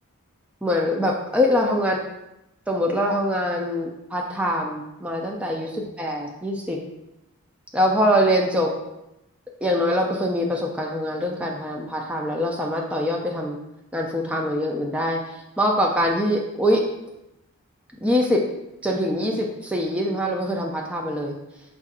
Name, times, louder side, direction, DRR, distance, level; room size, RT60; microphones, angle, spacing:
voice 1, 0.6-2.0 2.7-6.8 7.7-8.7 9.6-13.6 13.9-16.8 18.0-18.4 18.8-21.4, equal, 5° right, -1 dB, 0.3 m, -23 dB
4.5 x 2.5 x 4.0 m, 0.90 s
head